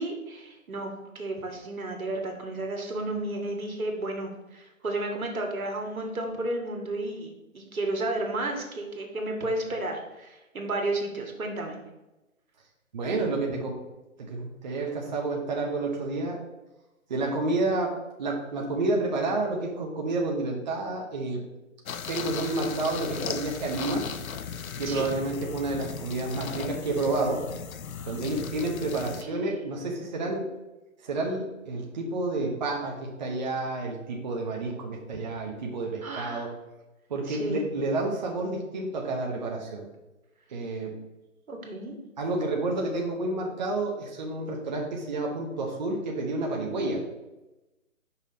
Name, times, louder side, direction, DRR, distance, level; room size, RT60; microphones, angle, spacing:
voice 1, 0.0-11.8 24.8-25.1 29.1-29.6 36.0-36.5 37.3-37.6 41.5-42.0, right 2 dB, 80° right, 2 dB, 1.9 m, -32 dB
voice 2, 12.9-13.8 14.2-16.4 17.1-21.4 22.1-24.1 24.8-27.4 28.1-30.5 31.0-36.5 37.1-39.9 40.5-41.0 42.2-47.0, right 2 dB, 35° right, 0 dB, 1.0 m, -30 dB
sound 1, 21.9-29.2, left 7 dB, 80° left, 0.7 m, -37 dB
5.8 x 5.7 x 4.1 m, 1.0 s
hypercardioid pair, 155°, 41 cm